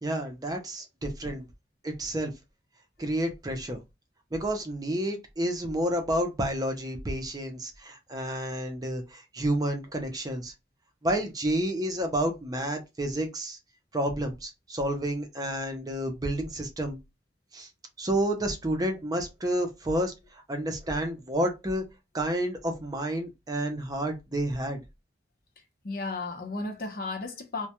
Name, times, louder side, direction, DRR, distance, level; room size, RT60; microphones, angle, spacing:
voice 1, 0.0-1.5 1.8-2.3 3.0-3.8 4.3-10.5 11.0-13.6 13.9-17.0 17.5-17.7 18.0-20.1 20.5-21.8 22.1-24.8, right 1 dB, 20° right, 0.5 m, -30 dB
voice 2, 25.8-27.7, left 3 dB, 55° left, 0.7 m, -34 dB
2.2 x 2.2 x 2.8 m
head